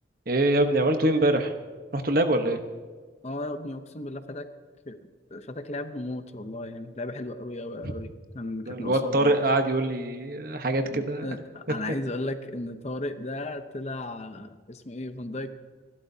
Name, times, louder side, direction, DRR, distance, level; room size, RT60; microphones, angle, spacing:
voice 1, 0.3-1.5 1.9-2.6 7.8-7.9 8.7-11.3, right 1 dB, 50° right, 6 dB, 1.1 m, -24 dB
voice 2, 3.2-4.5 4.9-9.4 10.9-15.5, left 2 dB, 35° left, 9 dB, 0.7 m, -35 dB
28.5 x 12.0 x 2.8 m, 1.5 s
head